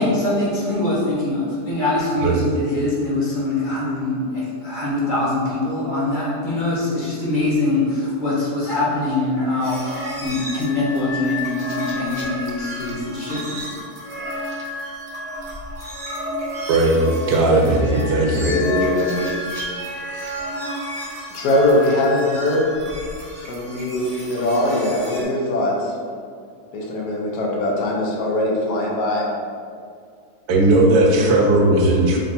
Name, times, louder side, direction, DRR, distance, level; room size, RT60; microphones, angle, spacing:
voice 1, 0.0-9.8 10.2-13.6, left 2 dB, 40° left, -7 dB, 0.8 m, -23 dB
sound 1, 9.6-25.2, equal, 40° right, 0.5 m, -31 dB
voice 2, 16.7-17.0 17.3-18.5 30.5-32.2, right 2 dB, 80° right, 0 dB, 1.2 m, -16 dB
voice 3, 18.1-19.2 21.3-22.7 23.5-25.9 26.7-29.3 31.2-31.3, left 1 dB, 90° left, -2 dB, 1.3 m, -21 dB
3.8 x 2.2 x 4.0 m, 2.2 s
omnidirectional pair, 1.7 m